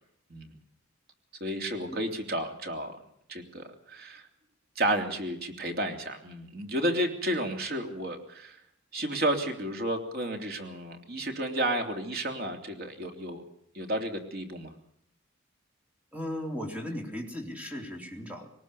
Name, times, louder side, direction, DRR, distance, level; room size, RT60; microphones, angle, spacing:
voice 1, 1.4-3.0 3.3-4.2 4.7-8.6 8.9-13.4 13.7-14.7, right 1 dB, 50° right, 4 dB, 3.2 m, -32 dB
voice 2, 16.1-18.5, equal, 5° right, 2 dB, 3.5 m, -36 dB
22.0 x 19.5 x 7.0 m, 0.73 s
head